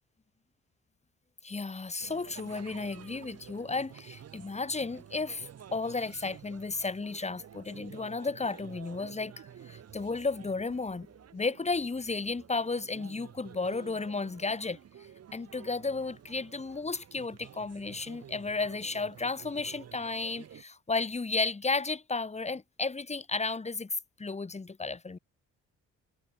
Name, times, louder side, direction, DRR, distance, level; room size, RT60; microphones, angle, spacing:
voice 1, 1.4-11.1 11.3-14.8 15.3-25.2, left 3 dB, 20° left, 2.1 m, -33 dB
sound 1, 2.0-20.6, right 9 dB, 55° right, 2.1 m, -50 dB
cardioid pair, 90°, 30 cm